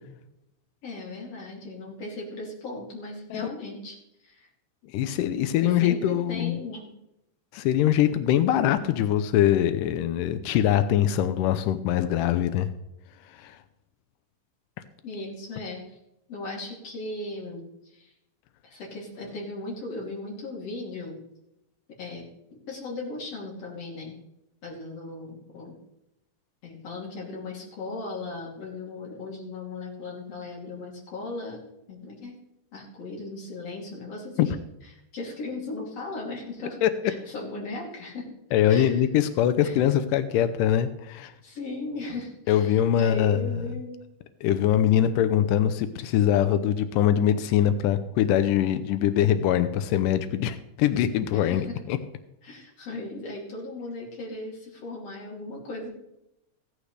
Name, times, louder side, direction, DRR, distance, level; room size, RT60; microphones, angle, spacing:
voice 1, 0.8-4.0 4.2-4.5 5.6-6.9 15.0-15.8 16.3-18.1 18.6-21.2 22.0-22.3 22.7-24.2 24.6-25.8 26.6-31.6 31.9-32.4 32.7-34.5 35.1-36.8 37.0-38.3 38.7-39.1 39.6-39.9 41.4-44.1 51.3-51.8 52.4-55.9, left 2 dB, 40° left, -3 dB, 3.7 m, -37 dB
voice 2, 4.9-6.6 7.5-12.7 13.3-13.6 34.4-34.5 36.8-36.9 38.5-41.3 42.5-43.5 44.4-52.0, left 10 dB, 85° left, 11 dB, 1.9 m, -23 dB
15.5 x 11.5 x 3.3 m, 0.86 s
omnidirectional pair, 4.5 m